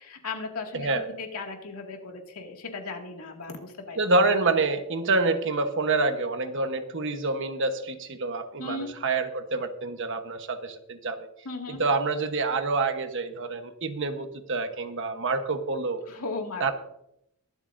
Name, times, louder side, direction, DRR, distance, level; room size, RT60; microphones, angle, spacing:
voice 1, 0.0-4.0 8.6-9.0 11.4-11.8 16.1-16.7, left 3 dB, 80° left, 2 dB, 2.2 m, -36 dB
voice 2, 0.7-1.1 4.0-11.3 11.7-16.0 16.6-16.7, right 3 dB, 60° right, 7 dB, 1.1 m, -27 dB
23.0 x 7.9 x 2.6 m, 0.78 s
head